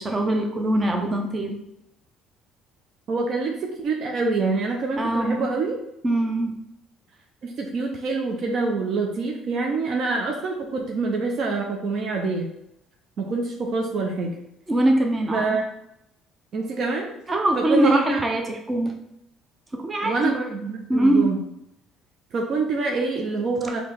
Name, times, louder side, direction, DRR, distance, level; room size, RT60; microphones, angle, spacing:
voice 1, 0.0-1.6 5.0-5.4 6.0-6.6 14.7-15.6 17.3-18.9 19.7-20.3 20.9-21.4, right 1 dB, 25° right, 3 dB, 0.9 m, -22 dB
voice 2, 3.1-5.8 7.4-12.5 13.2-14.3 15.3-15.6 16.5-17.1 17.6-18.2 20.0-21.4 22.3-23.8, right 3 dB, 50° right, 0 dB, 0.7 m, -26 dB
4.3 x 2.9 x 3.6 m, 0.81 s
hypercardioid pair, 55°, 0 cm